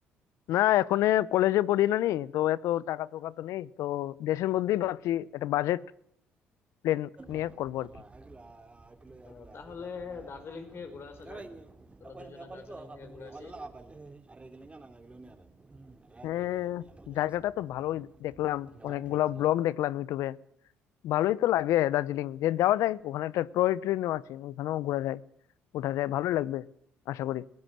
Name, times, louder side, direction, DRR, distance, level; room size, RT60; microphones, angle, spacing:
voice 1, 0.5-5.8 6.8-7.9 16.2-20.4 21.0-25.2 25.7-26.6 27.1-27.4, left 14 dB, 70° left, 0.8 m, -28 dB
sound 1, 7.2-19.5, right 3 dB, 20° right, 2.8 m, -49 dB
voice 2, 9.2-11.5 12.0-13.5, left 5 dB, 50° left, 5.5 m, -44 dB
21.0 x 16.5 x 7.6 m
hypercardioid pair, 60°, 5 cm